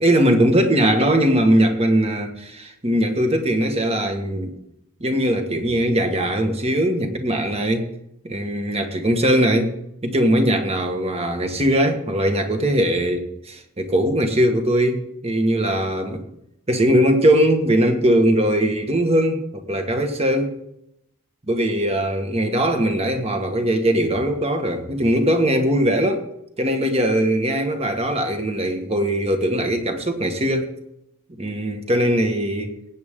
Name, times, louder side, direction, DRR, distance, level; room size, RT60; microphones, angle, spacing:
voice 1, 0.0-4.5 5.0-7.9 8.2-9.7 10.0-16.2 16.7-20.6 21.5-26.3 26.6-30.7 31.4-32.8, right 1 dB, 30° right, 5 dB, 1.6 m, -20 dB
17.0 x 8.9 x 3.7 m, 0.78 s
head